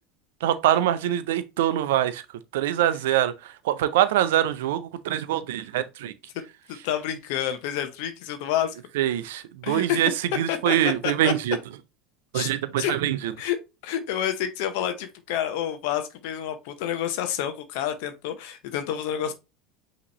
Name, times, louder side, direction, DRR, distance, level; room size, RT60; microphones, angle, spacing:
voice 1, 0.4-2.2 2.5-3.3 3.6-6.1 9.0-10.1 10.4-11.6 12.3-13.3, right 12 dB, 75° right, 0.5 m, -24 dB
voice 2, 6.8-8.7 9.6-10.0 10.5-10.8 11.0-11.3 12.3-12.5 12.8-12.9 13.4-13.6 13.8-19.3, left 10 dB, 65° left, 0.6 m, -28 dB
5.7 x 2.9 x 3.0 m
hypercardioid pair, 80°, 0 cm